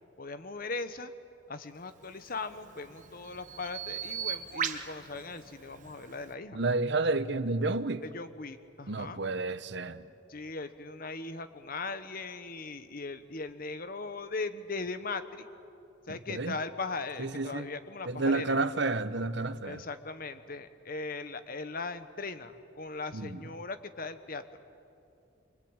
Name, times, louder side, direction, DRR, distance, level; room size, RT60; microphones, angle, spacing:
voice 1, 0.2-1.1 1.5-6.6 8.0-9.2 10.3-15.5 16.1-18.5 19.6-24.4, left 3 dB, 45° left, 11 dB, 1.1 m, -39 dB
Bird vocalization bird call bird song, 2.1-6.3, right 8 dB, 40° right, 1.3 m, -39 dB
voice 2, 6.5-8.0 8.9-10.1 16.1-16.5 17.2-17.7 18.1-19.8 23.1-23.4, right 3 dB, 60° right, 12 dB, 1.0 m, -30 dB
26.0 x 24.0 x 9.0 m, 2.6 s
head